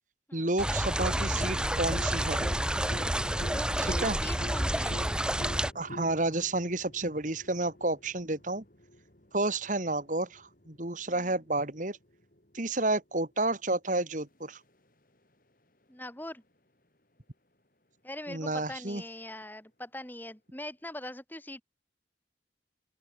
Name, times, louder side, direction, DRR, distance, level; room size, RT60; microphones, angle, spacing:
voice 1, 0.3-2.4 4.0-4.2 5.7-8.6 9.3-12.0 12.5-14.6 18.3-19.0, right 2 dB, 45° right, 2.3 m, -30 dB
sound 1, 0.6-5.7, right 1 dB, 5° right, 1.9 m, -29 dB
sound 2, 1.0-12.8 14.2-14.3, equal, 50° left, 4.8 m, -45 dB
voice 2, 3.4-5.0 11.1-11.4 15.9-16.4 18.0-21.6, left 1 dB, 10° left, 5.0 m, -42 dB
open air
head